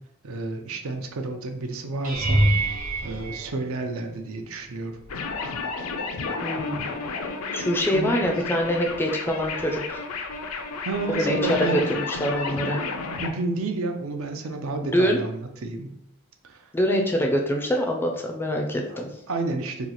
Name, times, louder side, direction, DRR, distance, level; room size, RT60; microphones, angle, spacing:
voice 1, 0.2-2.5 3.0-5.0 7.9-8.1 10.8-11.8 13.2-15.9 16.4-16.7 18.9-19.0 19.3-19.9, right 3 dB, 75° right, 4 dB, 0.5 m, -30 dB
sound 1, 2.0-4.3 5.0-5.5 5.8-6.0 10.3-10.4, right 1 dB, 35° right, 0.8 m, -26 dB
sound 2, 5.1-13.3, left 4 dB, 80° left, 0.5 m, -32 dB
voice 2, 6.4-7.0 7.5-10.0 11.2-12.8 14.8-15.2 16.7-19.1, equal, 10° left, 2 dB, 0.3 m, -25 dB
3.0 x 2.3 x 4.0 m, 0.84 s
head